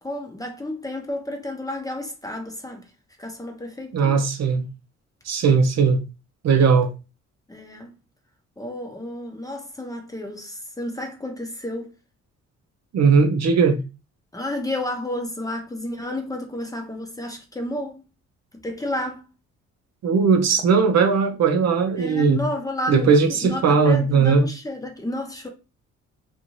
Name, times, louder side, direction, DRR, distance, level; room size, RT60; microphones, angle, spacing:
voice 1, 0.0-2.9 3.2-4.2 7.5-7.9 8.6-11.9 14.3-18.0 18.5-19.3 22.0-25.5, left 1 dB, 10° left, 0.7 m, -31 dB
voice 2, 3.9-4.7 5.3-6.0 6.4-6.9 12.9-13.8 20.0-22.4 22.9-24.4, right 5 dB, 60° right, 0.6 m, -18 dB
2.5 x 2.5 x 3.0 m
cardioid pair, 90°, 30 cm